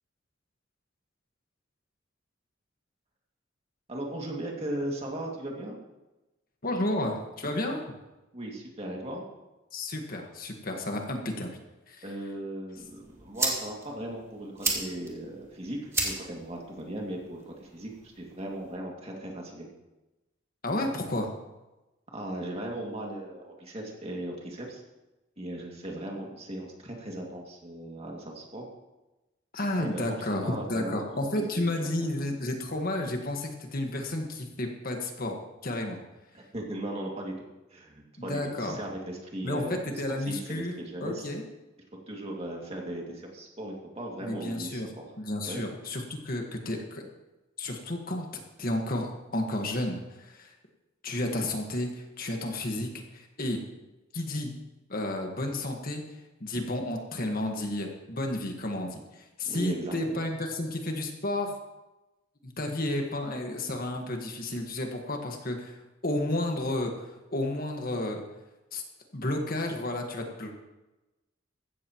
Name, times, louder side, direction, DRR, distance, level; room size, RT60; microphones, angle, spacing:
voice 1, 3.9-5.8 8.3-9.2 12.0-19.7 22.1-24.8 25.4-28.7 29.8-31.2 31.5-32.1 36.3-37.3 37.7-39.8 40.2-41.3 42.1-45.0 45.5-45.6 59.5-60.3, right 1 dB, 35° right, -1 dB, 2.3 m, -37 dB
voice 2, 6.6-7.8 9.7-11.5 11.9-12.0 20.6-21.3 29.5-35.4 35.6-36.0 38.2-38.8 39.4-39.6 40.0-41.4 44.2-44.9 45.2-47.1 47.6-50.5 51.0-53.6 54.1-54.5 54.9-56.0 56.4-61.6 62.4-68.2 68.7-68.8 69.1-70.5, left 1 dB, 50° left, 3 dB, 1.6 m, -32 dB
sound 1, 12.8-18.8, right 2 dB, 15° right, 2.1 m, -35 dB
15.5 x 13.5 x 3.1 m, 1.0 s
head